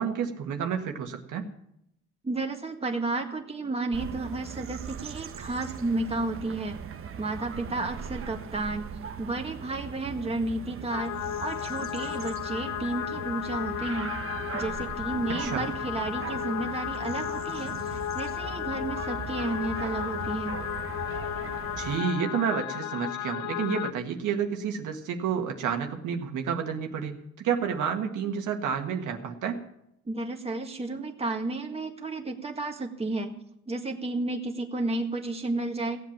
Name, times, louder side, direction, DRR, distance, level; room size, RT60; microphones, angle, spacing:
voice 1, 0.0-1.5 15.4-15.7 21.8-29.6, right 7 dB, 80° right, 3 dB, 1.7 m, -30 dB
voice 2, 2.2-6.8 7.2-8.8 9.2-14.1 14.5-20.5 30.1-33.3 33.7-36.0, right 2 dB, 20° right, 2 dB, 1.8 m, -32 dB
sound 1, 3.9-22.0, right 7 dB, 45° right, 0.9 m, -40 dB
sound 2, 10.9-23.9, left 11 dB, 65° left, 0.6 m, -34 dB
16.5 x 7.9 x 7.4 m, 0.77 s
cardioid pair, 90°, 30 cm